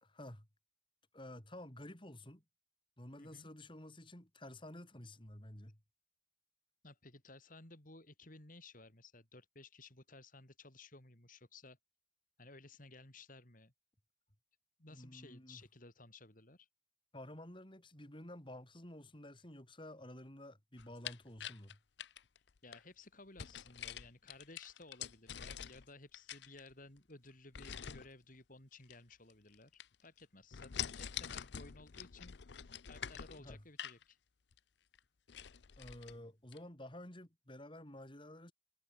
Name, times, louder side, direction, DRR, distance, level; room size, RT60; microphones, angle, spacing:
voice 1, 0.0-0.5 1.1-2.4 3.0-5.8 14.9-15.6 17.1-21.8 33.4-33.6 35.8-38.5, left 1 dB, 25° left, 3.9 m, -51 dB
voice 2, 3.2-3.5 6.8-11.8 12.4-13.7 14.8-16.7 22.6-32.4 32.9-34.2, left 2 dB, 45° left, 3.8 m, -57 dB
sound 1, 20.8-22.8 23.4-25.9 26.1-27.0 27.5-28.1 28.8-29.6 29.8-30.2 30.5-34.0 34.5-34.6 34.9-35.0 35.3-36.1 36.5-36.6, left 9 dB, 65° left, 0.6 m, -46 dB
head